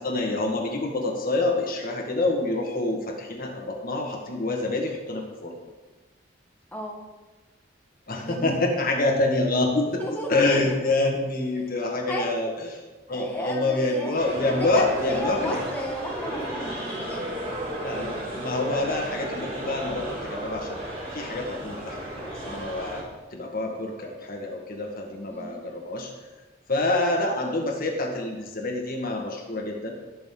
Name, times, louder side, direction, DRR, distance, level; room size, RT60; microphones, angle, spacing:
voice 1, 0.0-5.5 8.1-10.0 10.3-12.8 13.1-15.6 17.8-20.8 21.1-23.0 23.3-26.1 26.7-29.9, left 2 dB, 50° left, 1 dB, 1.8 m, -27 dB
voice 2, 6.7-7.0 8.2-8.6 9.9-10.7 12.1-12.5 13.1-17.3 25.3-25.6, equal, 10° left, -2 dB, 1.6 m, -34 dB
sound 1, 14.1-23.0, right 1 dB, 30° right, 3.0 m, -34 dB
17.5 x 6.7 x 3.9 m, 1.2 s
head